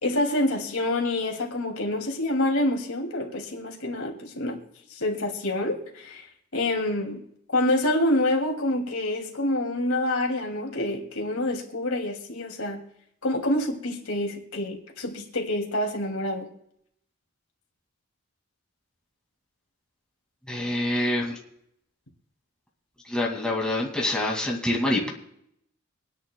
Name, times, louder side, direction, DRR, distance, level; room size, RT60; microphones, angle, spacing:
voice 1, 0.0-4.6 4.9-6.3 6.5-7.2 7.5-12.8 13.2-16.5, left 1 dB, 85° left, 2.6 m, -27 dB
voice 2, 20.5-21.4 23.1-25.1, left 1 dB, 5° left, 2.3 m, -26 dB
25.0 x 10.5 x 2.3 m
head